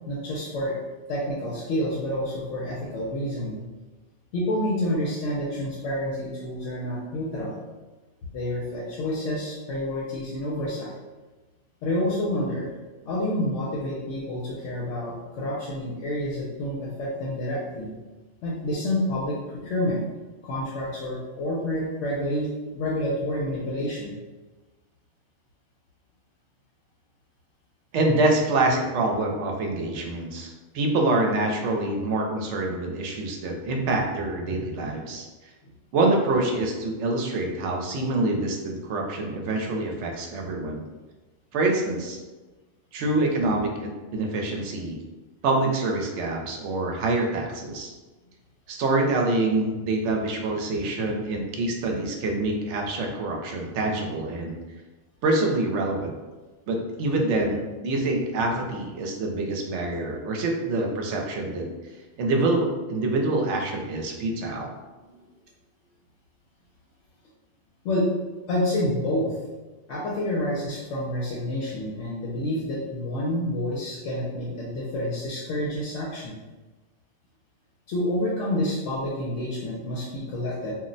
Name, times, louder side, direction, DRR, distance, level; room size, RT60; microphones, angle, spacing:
voice 1, 0.1-0.8 1.1-3.6 4.3-7.6 8.3-10.9 11.8-12.7 13.0-17.9 18.4-20.0 20.4-24.2 65.0-65.1 67.8-68.1 68.5-69.4 69.9-76.3 77.9-80.7, left 1 dB, 80° left, -5 dB, 0.9 m, -28 dB
voice 2, 27.9-35.3 35.9-40.9 41.5-42.2 42.9-45.0 45.4-47.9 48.7-54.6 55.2-56.1 56.7-61.7 62.2-64.7, right 2 dB, 75° right, 1 dB, 0.9 m, -26 dB
2.4 x 2.1 x 3.8 m, 1.2 s
omnidirectional pair, 1.3 m